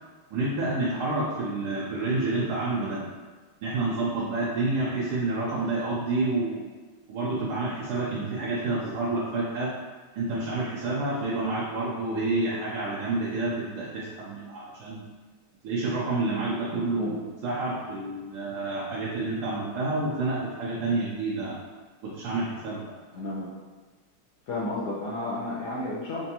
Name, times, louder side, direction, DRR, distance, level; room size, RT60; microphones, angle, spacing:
voice 1, 0.3-3.0 3.6-6.6 7.1-9.7 10.1-15.0 15.6-21.6 22.0-22.9, right 2 dB, 80° right, -8 dB, 1.6 m, -29 dB
voice 2, 16.7-17.2 23.1-23.6 24.5-26.3, left 2 dB, 70° left, -7 dB, 1.0 m, -32 dB
4.5 x 2.6 x 2.8 m, 1.4 s
omnidirectional pair, 2.3 m